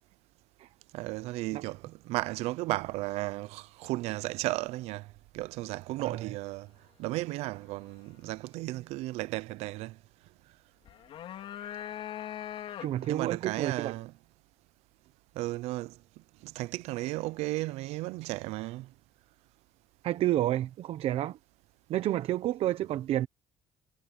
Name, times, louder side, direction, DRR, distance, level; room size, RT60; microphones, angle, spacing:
voice 1, 0.9-5.1 5.3-6.7 7.0-10.0 13.1-14.1 15.4-16.0 16.4-18.9, right 19 dB, 85° right, 0.6 m, -34 dB
voice 2, 6.0-6.4 12.8-14.0 20.0-21.4 21.9-23.3, right 13 dB, 65° right, 1.0 m, -30 dB
sound 1, 10.9-13.2, left 11 dB, 65° left, 4.2 m, -40 dB
cardioid pair, 105°, 11 cm